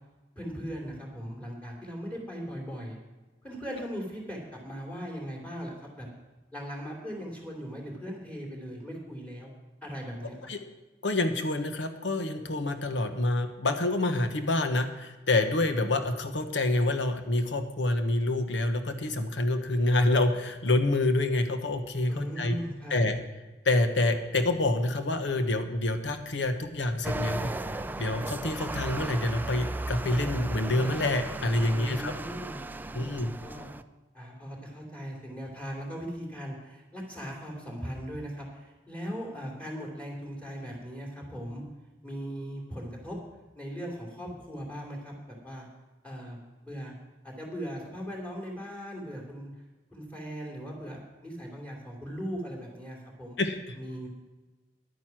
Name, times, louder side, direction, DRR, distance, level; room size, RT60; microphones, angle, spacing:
voice 1, 0.3-3.0 3.4-6.1 6.5-9.5 9.8-10.4 22.1-22.9 31.7-33.7 34.1-41.6 42.0-43.2 43.5-45.7 46.0-46.9 47.2-49.5 49.9-53.4 53.7-54.1, equal, 5° left, -1 dB, 2.9 m, -39 dB
voice 2, 11.0-22.5 22.9-23.2 23.6-27.5 27.9-32.1 32.9-33.3 53.4-53.6, left 2 dB, 75° left, 8 dB, 1.1 m, -27 dB
sound 1, 27.0-33.8, right 2 dB, 10° right, 0.3 m, -36 dB
10.5 x 9.2 x 6.0 m, 1.2 s
head